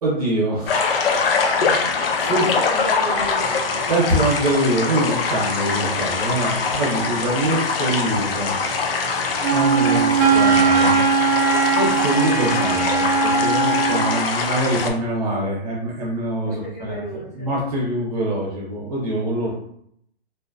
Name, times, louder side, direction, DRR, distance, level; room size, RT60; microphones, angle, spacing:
voice 1, 0.0-1.1 1.6-2.4 3.9-9.1 9.4-11.0 11.6-17.0 17.3-19.5, right 1 dB, 35° right, -4 dB, 0.9 m, -24 dB
sound 1, 0.7-14.9, left 4 dB, 65° left, 0.5 m, -23 dB
voice 2, 1.9-4.1 6.6-6.8 16.4-17.5, right 1 dB, 15° left, -8 dB, 0.6 m, -35 dB
Wind instrument woodwind instrument, 9.4-14.2, right 5 dB, 80° right, 0.5 m, -19 dB
2.6 x 2.0 x 2.5 m, 0.70 s
hypercardioid pair, 175°, 32 cm